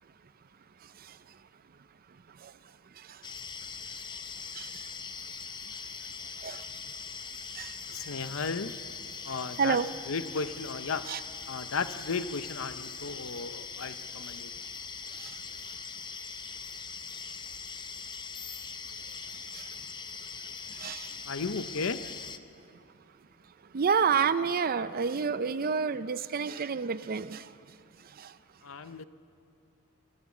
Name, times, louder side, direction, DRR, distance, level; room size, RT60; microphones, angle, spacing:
sound 1, 3.2-22.4, left 5 dB, 20° left, 0.7 m, -41 dB
voice 1, 7.9-8.7 9.2-9.8 10.1-11.1 11.5-14.5 21.3-22.0 28.6-29.1, left 4 dB, 70° left, 12 dB, 0.7 m, -34 dB
voice 2, 9.6-9.9 11.1-11.2 19.5-19.6 20.8-21.1 23.7-27.4 28.2-28.3, right 6 dB, 45° right, 15 dB, 0.5 m, -28 dB
25.5 x 14.5 x 7.3 m, 2.8 s
head